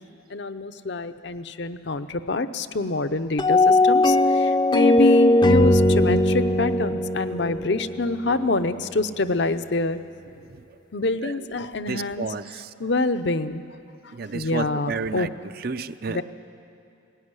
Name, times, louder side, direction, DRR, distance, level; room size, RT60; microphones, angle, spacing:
voice 1, 0.3-10.0 10.9-12.2 12.8-13.6 14.3-15.3 16.1-16.2, left 3 dB, 60° left, 9 dB, 0.7 m, -26 dB
sound 1, 3.4-8.6, left 1 dB, 20° left, 0.5 m, -19 dB
voice 2, 11.9-12.7 14.1-15.3 15.6-16.2, right 4 dB, 50° right, 11 dB, 0.6 m, -31 dB
18.5 x 16.5 x 9.7 m, 2.5 s
head